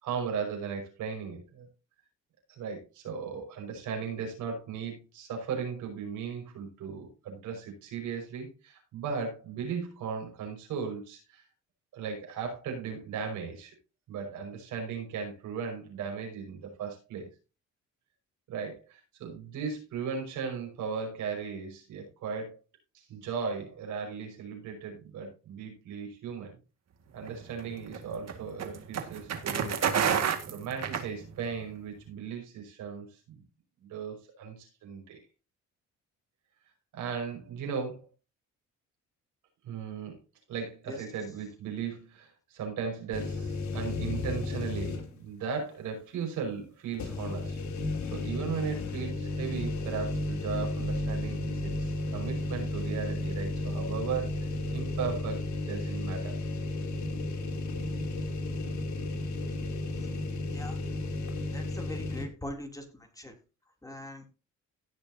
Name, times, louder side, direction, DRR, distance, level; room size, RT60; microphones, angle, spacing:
voice 1, 0.0-1.7 2.5-11.4 11.9-13.7 14.1-17.3 18.5-22.5 23.1-26.5 27.1-29.8 30.5-33.4 33.8-35.2 36.9-38.1 39.6-40.2 40.5-47.6 48.1-56.4, right 6 dB, 85° right, 2 dB, 5.6 m, -37 dB
sound 1, 27.2-31.6, right 7 dB, 60° right, 2.0 m, -30 dB
sound 2, 43.1-45.3 45.7-45.8 46.9-62.3, left 2 dB, 70° left, 3.0 m, -33 dB
voice 2, 61.5-62.8 63.2-63.3 63.8-64.3, left 1 dB, 10° left, 3 dB, 3.1 m, -41 dB
17.5 x 6.5 x 2.8 m, 0.31 s
cardioid pair, 90°, 30 cm